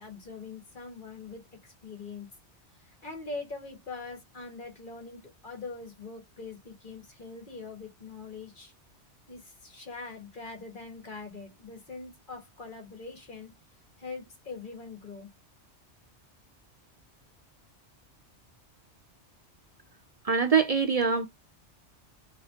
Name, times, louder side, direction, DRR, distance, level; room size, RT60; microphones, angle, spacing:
voice 1, 0.0-2.3 3.0-8.7 9.3-13.5 14.0-15.3, left 4 dB, 45° left, 1.8 m, -42 dB
voice 2, 20.2-21.3, right 5 dB, 50° right, 0.4 m, -24 dB
4.2 x 3.7 x 2.8 m
omnidirectional pair, 1.2 m